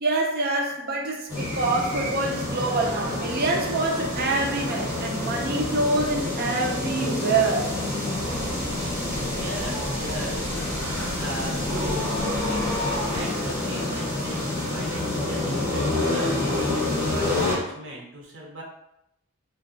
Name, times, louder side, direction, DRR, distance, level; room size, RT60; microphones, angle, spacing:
voice 1, 0.0-7.7, right 2 dB, 45° right, 1 dB, 0.4 m, -26 dB
sound 1, 1.3-17.5, left 2 dB, 10° right, 1.4 m, -28 dB
sound 2, 8.2-13.2, right 1 dB, 35° left, 1.4 m, -38 dB
voice 2, 9.2-12.7 13.1-18.6, right 1 dB, 65° right, -2 dB, 0.8 m, -38 dB
2.6 x 2.3 x 3.7 m, 0.82 s
head